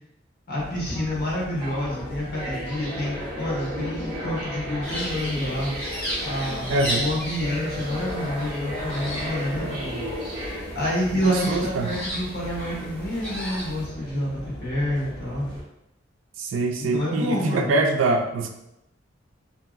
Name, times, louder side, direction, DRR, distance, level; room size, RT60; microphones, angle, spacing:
voice 1, 0.5-5.7 6.2-10.0 10.7-15.5 16.8-17.8, left 1 dB, 55° left, -5 dB, 1.1 m, -28 dB
sound 1, 0.6-15.6, equal, 65° right, 1.4 m, -35 dB
sound 2, 4.8-13.9, equal, 10° left, 1.1 m, -35 dB
voice 2, 6.7-7.1 11.1-11.9 16.4-18.5, right 2 dB, 80° right, 5 dB, 0.4 m, -24 dB
2.9 x 2.6 x 2.4 m, 0.84 s
head